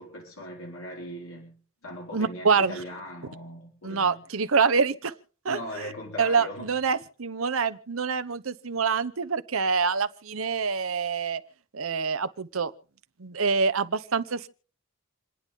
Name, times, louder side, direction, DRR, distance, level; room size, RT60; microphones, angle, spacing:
voice 1, 0.0-1.6 1.8-4.2 5.5-6.7, left 1 dB, 85° left, 5.1 m, -39 dB
voice 2, 2.1-2.8 3.8-5.2 5.4-5.6 6.2-11.4 11.7-12.7 13.2-14.5, right 5 dB, 70° right, 0.9 m, -26 dB
28.5 x 10.0 x 3.7 m
head